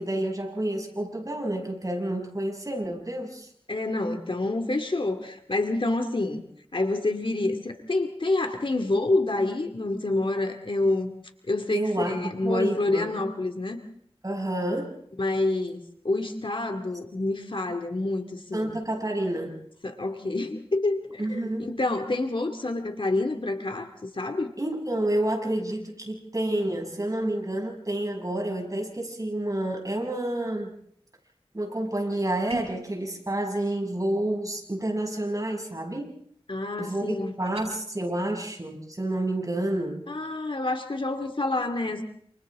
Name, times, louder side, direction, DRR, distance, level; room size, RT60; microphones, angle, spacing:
voice 1, 0.0-3.5 11.7-13.1 14.2-14.9 18.5-19.6 21.2-21.7 24.6-30.7 31.5-36.1 36.8-40.0, right 1 dB, 35° right, 1 dB, 6.4 m, -29 dB
voice 2, 3.7-6.4 6.7-11.1 11.5-13.8 15.2-18.8 19.8-24.5 36.5-37.3 40.1-42.0, left 2 dB, 60° left, 5 dB, 2.3 m, -27 dB
sound 1, 32.5-32.9 37.4-37.7, right 3 dB, 85° right, 6.4 m, -36 dB
29.0 x 28.0 x 3.7 m, 0.64 s
wide cardioid pair, 55°, 10 cm